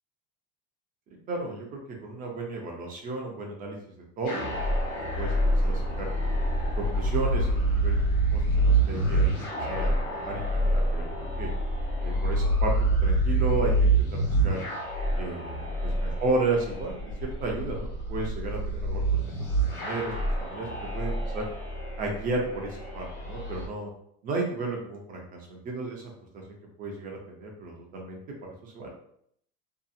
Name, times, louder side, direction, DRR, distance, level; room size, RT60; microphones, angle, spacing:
voice 1, 1.3-3.8 4.2-4.7 5.1-5.3 5.6-6.1 6.8-8.0 8.3-11.5 12.0-14.6 15.2-19.2 19.7-21.4 22.0-23.9 24.2-28.2 28.6-28.9, right 3 dB, 25° right, 0 dB, 0.4 m, -33 dB
sound 1, 4.2-23.7, right 1 dB, 60° left, 1.2 m, -27 dB
2.7 x 2.3 x 2.4 m, 0.68 s
supercardioid pair, 155°, 32 cm